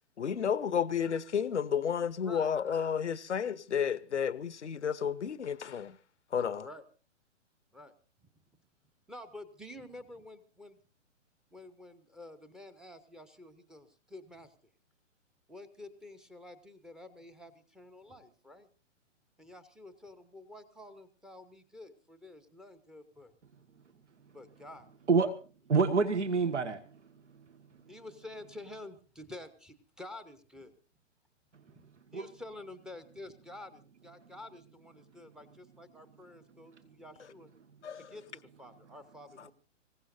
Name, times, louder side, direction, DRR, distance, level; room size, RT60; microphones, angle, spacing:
voice 1, 0.2-6.0 6.3-6.7 37.8-38.1, left 7 dB, 65° left, 0.9 m, -32 dB
voice 2, 9.1-10.8 11.5-14.5 15.5-18.7 19.4-23.3 24.3-24.9 27.9-30.8 31.7-31.8 32.1-37.5 37.9-39.5, left 1 dB, ahead, 0.9 m, -49 dB
voice 3, 25.7-26.8 32.1-32.3, right 4 dB, 65° right, 1.7 m, -26 dB
26.0 x 16.5 x 2.6 m
figure-of-eight pair, 125°, 37 cm